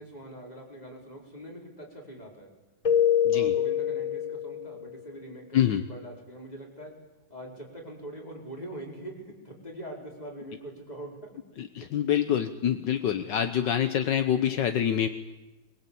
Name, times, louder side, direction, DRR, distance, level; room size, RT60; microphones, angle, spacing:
voice 1, 0.0-2.5 3.3-6.9 7.3-11.2, right 1 dB, 20° left, -1 dB, 4.9 m, -43 dB
Keyboard (musical), 2.9-4.9, left 9 dB, 40° left, 0.5 m, -25 dB
voice 2, 3.2-3.6 5.5-5.8 11.6-15.1, left 9 dB, 70° left, 9 dB, 1.6 m, -26 dB
22.0 x 22.0 x 8.5 m, 1.1 s
omnidirectional pair, 2.0 m